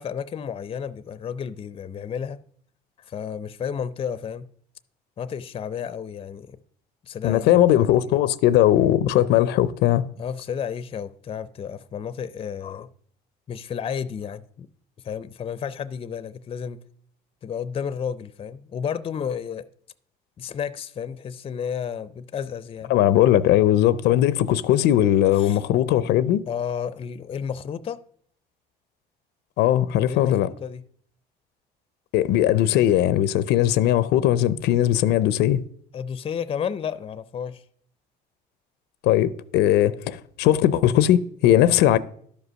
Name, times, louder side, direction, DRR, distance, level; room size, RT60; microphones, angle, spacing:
voice 1, 0.0-2.4 3.0-4.5 5.2-6.6 7.0-7.5 7.8-8.2 10.2-12.9 13.5-14.7 15.0-16.8 17.4-19.7 20.4-22.9 25.4-25.6 26.5-28.0 30.1-30.8 35.9-37.6, left 7 dB, 35° left, 0.5 m, -32 dB
voice 2, 7.2-10.1 22.9-26.4 29.6-30.5 32.1-35.6 39.0-42.0, left 12 dB, 85° left, 0.5 m, -19 dB
11.5 x 5.3 x 6.2 m
cardioid pair, 110°, 17 cm